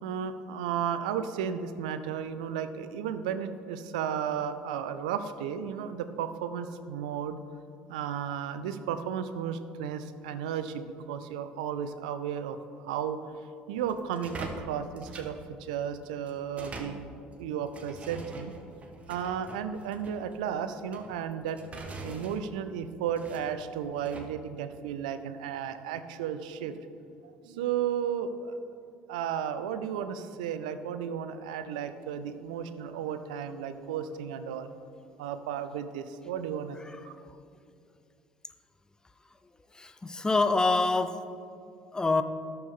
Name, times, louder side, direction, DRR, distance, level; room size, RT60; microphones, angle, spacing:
voice 1, 0.0-7.4 7.9-13.2 13.7-17.1 17.4-18.5 19.1-21.6 21.9-26.7 27.4-28.6 29.1-34.7 35.2-37.1, right 8 dB, 90° right, 10 dB, 0.5 m, -34 dB
sound 1, 13.7-24.3, right 2 dB, 35° right, 1.3 m, -45 dB
voice 2, 39.7-41.2 41.9-42.2, left 3 dB, 20° left, 11 dB, 0.6 m, -25 dB
10.5 x 7.0 x 3.7 m, 2.5 s
supercardioid pair, 75°, 4 cm